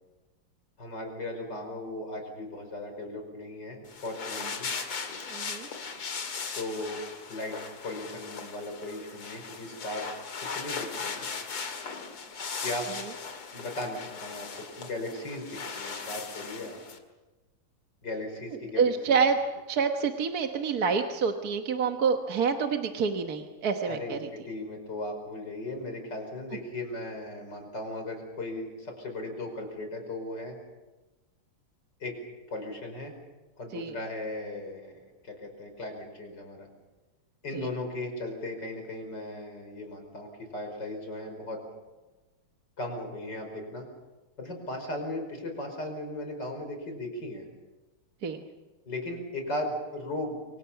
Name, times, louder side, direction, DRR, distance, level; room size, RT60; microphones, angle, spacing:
voice 1, 0.8-4.7 6.5-7.0 7.3-7.6 7.8-10.1 10.4-11.3 12.6-12.9 13.5-16.8 18.0-19.2 23.9-30.6 32.0-32.2 32.5-33.1 33.6-36.7 37.4-41.6 42.8-43.9 44.4-47.5 48.9-50.6, left 1 dB, 50° left, 4 dB, 5.8 m, -37 dB
sound 1, 3.9-17.0, left 5 dB, 90° left, 3.1 m, -38 dB
voice 2, 5.3-5.7 18.8-19.4 19.7-24.2 33.7-33.9 37.5-37.7 48.2-48.4, right 5 dB, 50° right, 4 dB, 1.6 m, -27 dB
28.0 x 25.5 x 5.8 m, 1.2 s
omnidirectional pair, 2.4 m